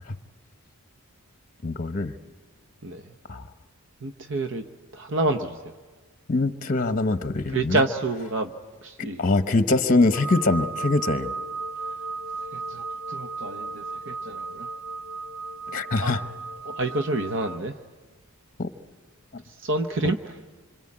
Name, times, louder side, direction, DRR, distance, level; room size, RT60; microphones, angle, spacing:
voice 1, 1.6-2.1 3.3-3.5 6.3-7.8 9.0-11.3 15.7-16.2 18.6-18.7, left 2 dB, 40° left, 10 dB, 1.0 m, -23 dB
voice 2, 2.8-3.1 4.0-4.6 4.9-5.6 7.5-8.5 8.8-9.3 12.4-14.7 16.0-16.1 16.6-17.8 19.4-20.4, right 2 dB, 60° right, 7 dB, 0.9 m, -28 dB
sound 1, 10.1-17.6, right 3 dB, 80° right, 1.2 m, -35 dB
26.5 x 25.5 x 8.7 m, 1.4 s
head